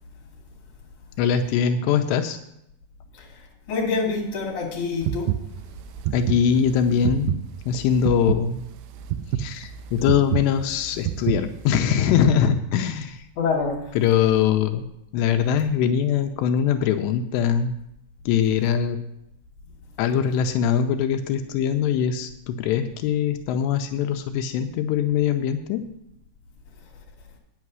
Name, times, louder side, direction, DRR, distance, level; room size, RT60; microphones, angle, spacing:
voice 1, 1.2-2.4 6.1-7.4 7.7-8.6 9.4-13.2 14.0-14.8 15.1-17.7 18.3-19.0 20.0-25.8, left 8 dB, 90° left, 6 dB, 2.9 m, -22 dB
voice 2, 3.7-5.4 13.4-13.8, left 4 dB, 50° left, -1 dB, 3.5 m, -26 dB
sound 1, 5.0-11.8, right 12 dB, 80° right, 2.5 m, -28 dB
9.5 x 8.7 x 6.1 m, 0.79 s
omnidirectional pair, 4.8 m